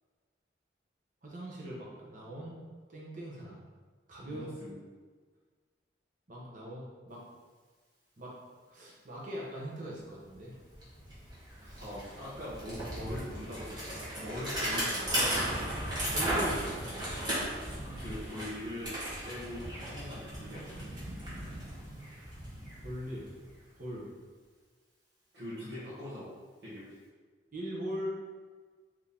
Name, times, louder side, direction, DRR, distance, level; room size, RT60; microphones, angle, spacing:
voice 1, 1.2-2.6 2.9-3.6 4.1-4.5 6.3-7.2 8.2-8.3 8.7-10.5 11.6-11.9 16.1-17.2 22.8-23.3 23.8-24.1 27.5-28.3, equal, 45° right, -4 dB, 1.1 m, -41 dB
voice 2, 4.2-4.7 11.8-15.9 18.0-19.0 19.2-20.9 25.3-26.3 26.6-26.9, left 1 dB, 60° right, -10 dB, 1.2 m, -42 dB
Bicycle, 10.3-10.4 10.7-23.6, right 1 dB, 25° right, 1.3 m, -36 dB
4.5 x 3.0 x 3.5 m, 1.5 s
head